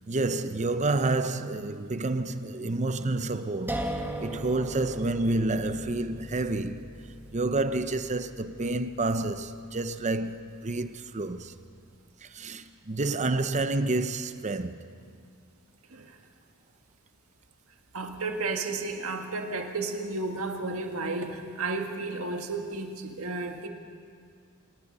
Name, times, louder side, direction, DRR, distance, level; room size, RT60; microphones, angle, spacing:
voice 1, 0.1-6.8 7.3-11.5 12.2-14.9, right 2 dB, 30° right, 0.7 m, -29 dB
sound 1, 3.7-10.6, right 1 dB, 10° right, 1.3 m, -39 dB
voice 2, 17.9-23.7, right 3 dB, 65° right, 2.0 m, -33 dB
27.0 x 18.5 x 5.5 m
head